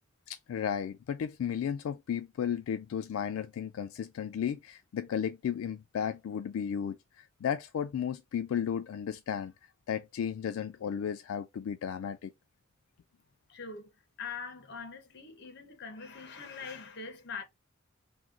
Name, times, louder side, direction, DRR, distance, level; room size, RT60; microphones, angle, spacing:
voice 1, 0.3-9.5 9.9-12.3, left 8 dB, 85° left, 0.3 m, -34 dB
voice 2, 13.5-13.9 14.2-17.4, left 5 dB, 55° left, 0.9 m, -43 dB
3.0 x 2.2 x 3.6 m
head